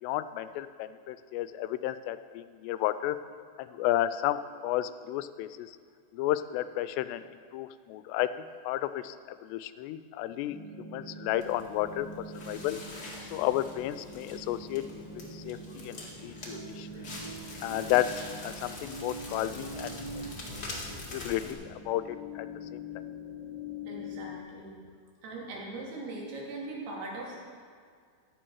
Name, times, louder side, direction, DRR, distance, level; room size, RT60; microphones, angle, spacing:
voice 1, 0.0-3.2 3.6-5.8 6.1-7.2 7.5-12.1 12.5-12.8 13.3-14.8 15.3-16.9 17.6-18.1 18.4-20.0 21.0-23.0, left 14 dB, 85° left, 13 dB, 2.7 m, -32 dB
sound 1, 10.5-24.4, left 2 dB, 70° left, 1.1 m, -45 dB
Crackle, 11.3-21.5, left 1 dB, 40° left, 1.5 m, -43 dB
voice 2, 23.9-24.8 25.2-27.4, right 2 dB, 70° right, -3 dB, 4.6 m, -40 dB
15.0 x 12.0 x 4.7 m, 2.1 s
omnidirectional pair, 4.9 m